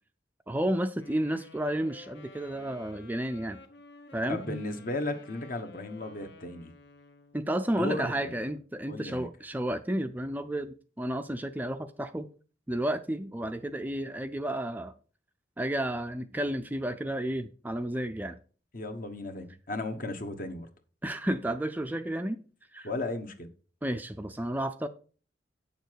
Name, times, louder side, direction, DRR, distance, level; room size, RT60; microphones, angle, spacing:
voice 1, 0.5-3.6 4.1-4.6 7.3-12.3 12.7-15.0 15.6-18.4 21.0-22.4 22.7-22.9 23.8-24.9, right 1 dB, 10° right, 0.4 m, -32 dB
Wind instrument woodwind instrument, 1.0-7.4, left 3 dB, 65° left, 1.2 m, -52 dB
voice 2, 4.3-6.7 7.7-8.4 8.9-9.3 18.7-20.7 22.8-23.5, left 2 dB, 50° left, 1.2 m, -35 dB
8.6 x 6.9 x 4.6 m
head